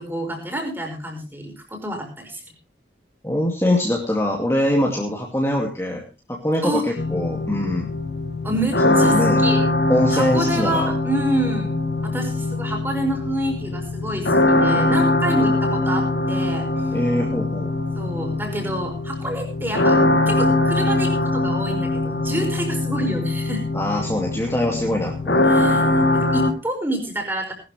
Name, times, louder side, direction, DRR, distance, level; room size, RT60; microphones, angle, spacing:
voice 1, 0.0-2.4 6.6-6.9 8.4-9.6 10.1-11.7 12.0-16.9 17.9-20.0 20.2-23.7 25.4-27.5, right 1 dB, 10° right, 3 dB, 4.9 m, -28 dB
voice 2, 3.2-6.0 6.3-7.9 8.8-9.4 9.9-10.9 16.9-17.7 23.7-25.4, left 1 dB, 15° left, -1 dB, 2.5 m, -23 dB
sound 1, 7.0-26.5, left 2 dB, 80° left, 2.2 m, -22 dB
19.5 x 12.5 x 3.3 m, 0.29 s
head